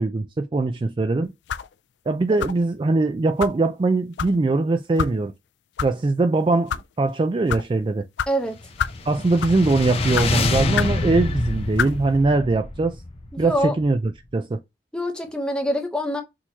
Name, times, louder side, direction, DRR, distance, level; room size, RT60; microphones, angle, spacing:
voice 1, 0.0-1.3 2.1-5.3 5.8-8.1 9.1-13.0 13.4-14.6, right 3 dB, 30° right, 0.3 m, -21 dB
sound 1, 1.5-1.7 2.4-2.7 3.4-3.6 4.2-4.4 5.0-5.1 5.8-5.9 6.5-6.8 7.5-7.6 8.2-8.3 8.8-9.0 9.4-9.6 10.1-10.3 10.7-11.0 11.8-12.0, left 8 dB, 85° left, 0.3 m, -27 dB
voice 2, 8.3-8.6 13.3-13.7 14.9-16.2, equal, 5° left, 0.9 m, -25 dB
sound 2, 8.6-14.0, left 2 dB, 35° left, 0.6 m, -27 dB
6.2 x 2.9 x 2.8 m
head